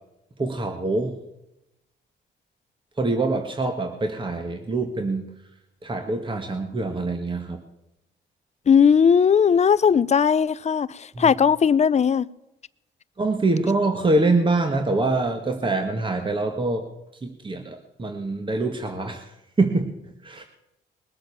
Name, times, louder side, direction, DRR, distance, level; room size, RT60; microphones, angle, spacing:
voice 1, 0.4-1.2 3.0-5.4 5.8-7.6 11.1-11.3 13.2-16.8 17.2-19.3 19.6-20.0 20.2-20.4, right 2 dB, 25° right, 5 dB, 1.6 m, -25 dB
voice 2, 8.7-12.3, left 7 dB, 35° left, 19 dB, 0.6 m, -18 dB
21.0 x 7.8 x 7.1 m, 0.90 s
cardioid pair, 90°, 20 cm